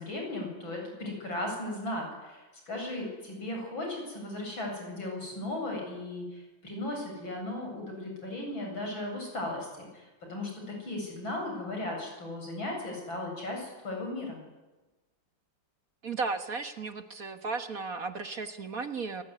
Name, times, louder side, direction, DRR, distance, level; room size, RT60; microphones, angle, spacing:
voice 1, 0.0-14.4, left 1 dB, 75° left, 1 dB, 8.8 m, -36 dB
voice 2, 16.0-19.2, right 4 dB, 45° right, 9 dB, 1.8 m, -35 dB
28.5 x 20.0 x 9.8 m, 1.1 s
omnidirectional pair, 2.1 m